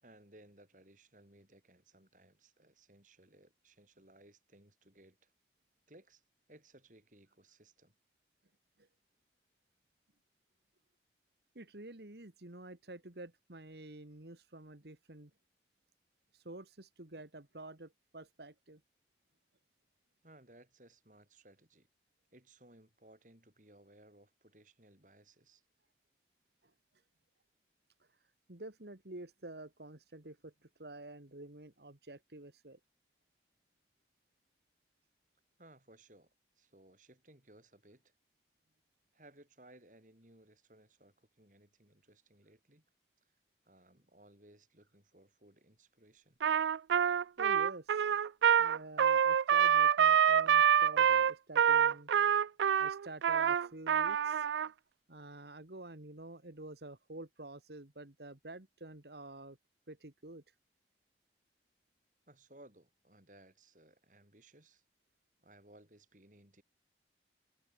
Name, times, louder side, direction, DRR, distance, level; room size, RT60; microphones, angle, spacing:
voice 1, 0.0-5.3 5.9-6.2 6.5-7.9 20.2-21.9 22.3-25.6 35.6-38.1 39.1-42.8 43.2-43.3 43.6-46.4 62.3-64.8 65.4-66.6, right 1 dB, 45° right, 4.4 m, -61 dB
voice 2, 11.6-15.3 16.3-18.8 28.5-30.5 30.8-32.8 47.4-48.1 48.6-52.1 52.8-54.5 55.1-59.6 59.9-60.4, right 2 dB, 70° right, 2.0 m, -49 dB
Trumpet, 46.4-54.7, right 8 dB, 90° right, 0.4 m, -27 dB
head